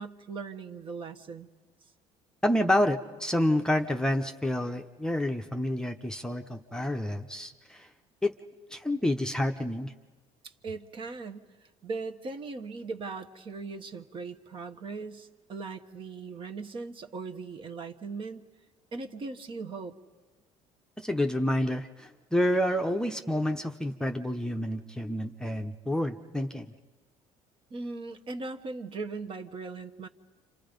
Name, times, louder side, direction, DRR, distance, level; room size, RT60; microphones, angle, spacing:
voice 1, 0.0-1.5 10.4-11.4 11.8-18.4 18.9-19.9 27.7-30.1, right 4 dB, 45° right, 6 dB, 1.3 m, -39 dB
voice 2, 2.4-7.9 8.2-8.3 8.7-9.9 21.0-26.7, left 1 dB, 5° left, 4 dB, 0.8 m, -28 dB
29.0 x 26.5 x 5.3 m, 1.3 s
cardioid pair, 110°, 13 cm